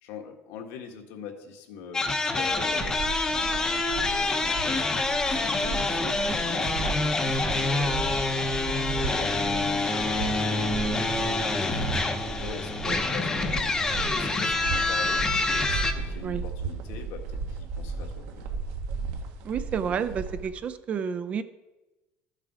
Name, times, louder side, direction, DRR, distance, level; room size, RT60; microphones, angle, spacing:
voice 1, 0.0-4.8 5.3-8.0 8.8-11.8 12.2-18.5, left 6 dB, 85° left, 3 dB, 1.7 m, -43 dB
sound 1, 1.9-15.9, left 2 dB, 15° left, 0.7 m, -26 dB
sound 2, 2.5-20.5, right 4 dB, 75° right, 1.4 m, -36 dB
voice 2, 19.4-21.4, right 7 dB, 30° right, 12 dB, 0.5 m, -30 dB
13.5 x 7.4 x 4.9 m, 1.0 s
cardioid pair, 175°, 5 cm